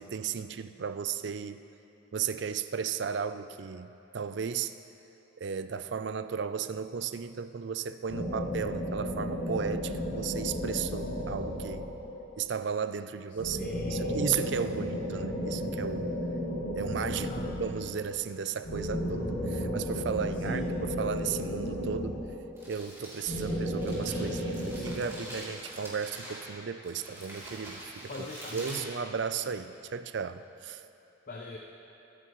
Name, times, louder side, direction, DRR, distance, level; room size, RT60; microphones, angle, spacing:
voice 1, 0.0-1.7 2.1-3.9 4.1-4.7 5.4-11.9 12.4-16.1 16.7-22.2 22.7-28.1 28.5-30.8, right 6 dB, 60° right, 12 dB, 0.4 m, -35 dB
sound 1, 8.1-12.3 13.4-18.0 18.6-22.6 23.2-24.9, equal, 55° left, 2.9 m, -33 dB
voice 2, 13.6-14.2 17.1-17.5 20.4-20.7 28.1-28.9 31.3-31.6, left 2 dB, 40° left, 0 dB, 0.7 m, -41 dB
Crumpling crinkling, 22.3-29.7, right 1 dB, 15° right, 3.0 m, -45 dB
22.5 x 9.5 x 3.1 m, 2.9 s
head